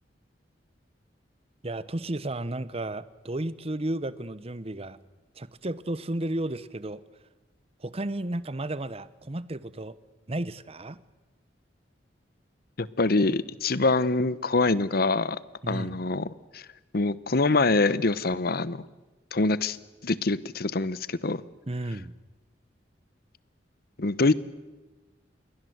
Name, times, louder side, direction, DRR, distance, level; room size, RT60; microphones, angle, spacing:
voice 1, 1.6-5.0 5.4-7.0 7.8-10.0 10.3-11.0 15.6-16.0 21.7-22.2, right 1 dB, 35° right, 17 dB, 1.0 m, -33 dB
voice 2, 12.8-15.4 15.7-16.6 16.9-18.8 19.3-19.8 20.0-21.4 24.0-24.3, left 3 dB, 60° left, 18 dB, 0.9 m, -25 dB
28.0 x 22.0 x 8.0 m, 1.2 s
head